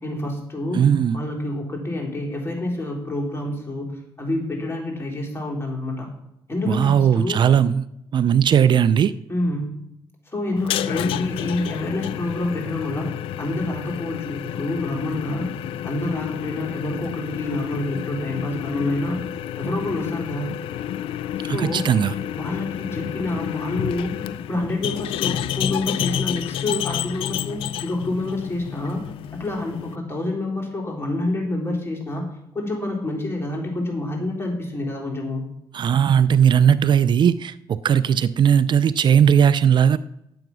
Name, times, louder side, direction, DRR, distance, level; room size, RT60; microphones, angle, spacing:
voice 1, 0.0-0.9 1.1-6.1 6.5-7.4 9.3-9.8 10.3-15.5 15.8-19.2 19.6-20.6 21.4-21.9 22.3-35.4, left 2 dB, 25° left, 0 dB, 4.1 m, -28 dB
voice 2, 0.7-1.2 6.7-7.9 8.1-9.1 21.4-22.1 35.7-40.0, right 8 dB, 60° right, 15 dB, 0.4 m, -18 dB
sound 1, 10.6-30.0, left 11 dB, 90° left, 0.4 m, -30 dB
10.5 x 7.9 x 6.1 m, 0.83 s
cardioid pair, 75°, 9 cm